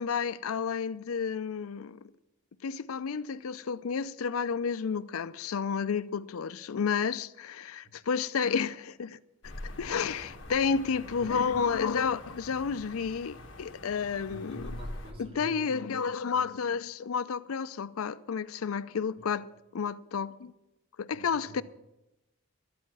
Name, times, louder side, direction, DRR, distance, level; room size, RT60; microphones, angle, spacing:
voice 1, 0.0-2.0 2.6-9.2 9.6-14.7 15.2-19.5 19.7-20.5 21.0-21.6, left 6 dB, 80° left, 0.5 m, -31 dB
sound 1, 9.4-15.1, left 1 dB, 60° left, 1.6 m, -45 dB
voice 2, 10.7-11.7 14.3-16.5 19.2-19.3 21.1-21.6, equal, 25° right, 2.6 m, -47 dB
12.0 x 8.6 x 7.3 m
head